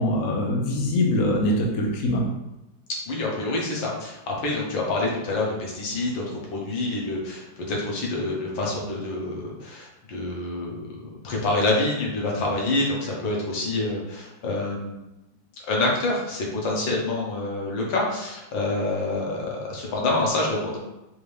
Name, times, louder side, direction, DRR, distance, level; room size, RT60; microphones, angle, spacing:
voice 1, 0.0-2.2, left 1 dB, 55° left, -1 dB, 1.0 m, -23 dB
voice 2, 3.1-15.0 15.6-20.8, left 2 dB, 80° left, -2 dB, 1.7 m, -27 dB
4.8 x 2.7 x 3.3 m, 0.95 s
omnidirectional pair, 2.1 m